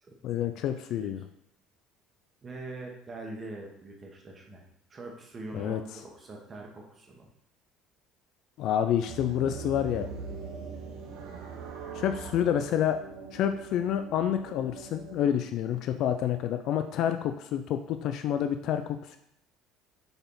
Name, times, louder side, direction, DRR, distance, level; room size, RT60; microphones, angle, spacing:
voice 1, 0.2-1.2 5.5-5.8 8.6-10.1 11.9-13.0 13.3-19.2, left 10 dB, 60° left, 8 dB, 0.4 m, -28 dB
voice 2, 2.4-4.6 4.9-7.3, right 2 dB, 25° right, 0 dB, 1.2 m, -43 dB
sound 1, 9.1-15.3, right 5 dB, 75° right, 1.3 m, -42 dB
6.7 x 4.1 x 3.9 m, 0.79 s
cardioid pair, 125°, 0 cm